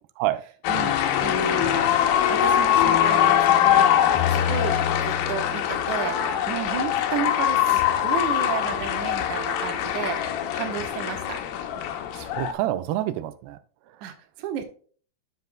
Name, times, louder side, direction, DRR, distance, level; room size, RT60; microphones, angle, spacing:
sound 1, 0.6-12.5, left 10 dB, 75° left, 2.3 m, -22 dB
voice 1, 0.7-2.0 2.3-4.0 4.3-11.4 14.0-14.6, right 8 dB, 65° right, 2.0 m, -33 dB
voice 2, 12.1-13.6, right 14 dB, 90° right, 2.7 m, -27 dB
11.5 x 6.8 x 2.2 m
omnidirectional pair, 4.7 m